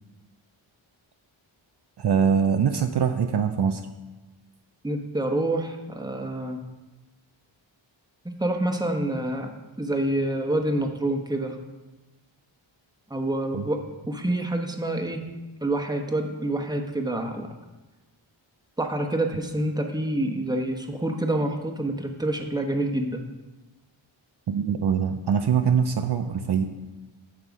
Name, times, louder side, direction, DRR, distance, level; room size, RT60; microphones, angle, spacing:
voice 1, 2.0-3.8 13.5-13.6 24.5-26.6, right 7 dB, 55° right, 6 dB, 0.6 m, -23 dB
voice 2, 4.8-6.6 8.4-9.5 9.8-11.6 13.1-15.2 15.6-17.5 18.8-23.2, right 1 dB, 10° right, 3 dB, 1.1 m, -27 dB
9.4 x 6.7 x 4.8 m, 1.1 s
cardioid pair, 70°, 47 cm